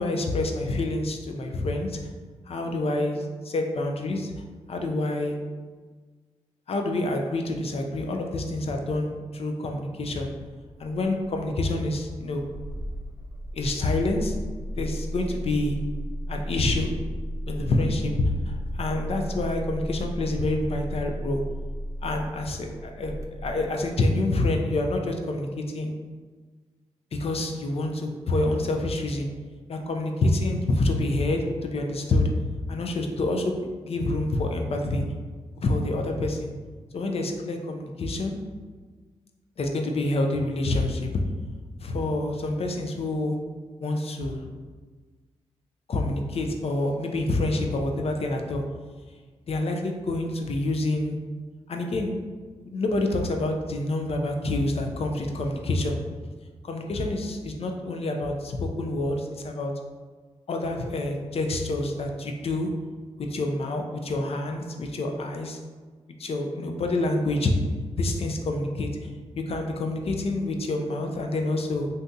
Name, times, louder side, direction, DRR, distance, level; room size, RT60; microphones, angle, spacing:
voice 1, 0.0-2.0 2.5-4.3 4.7-5.4 6.7-10.3 10.8-12.5 13.5-14.3 14.8-15.8 16.3-16.9 17.5-21.4 22.0-25.9 27.1-29.3 29.7-32.3 32.7-35.0 35.6-36.5 36.9-38.3 39.6-41.2 41.8-43.4 43.8-44.5 45.9-48.6 49.5-51.2 51.7-52.2 52.6-56.0 56.6-59.7 60.5-62.7 63.2-65.6 66.2-67.5 68.0-69.1 69.4-71.9, left 2 dB, 55° left, 3 dB, 0.5 m, -27 dB
Engine starting, 10.5-24.3, equal, 25° right, 0.5 m, -35 dB
2.7 x 2.6 x 3.5 m, 1.4 s
supercardioid pair, 50°, 12 cm